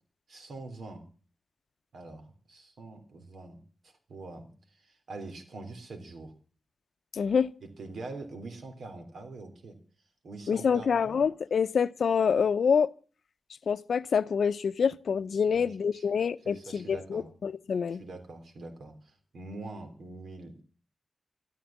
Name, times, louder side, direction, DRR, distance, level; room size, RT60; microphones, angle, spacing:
voice 1, 0.3-1.1 1.9-6.3 7.8-9.8 10.2-11.2 15.5-17.3 17.9-20.6, right 2 dB, 85° right, 3.5 m, -44 dB
voice 2, 7.1-7.5 10.5-12.9 13.7-18.0, left 6 dB, 85° left, 0.7 m, -26 dB
13.5 x 13.5 x 7.3 m
wide cardioid pair, 160°, 0 cm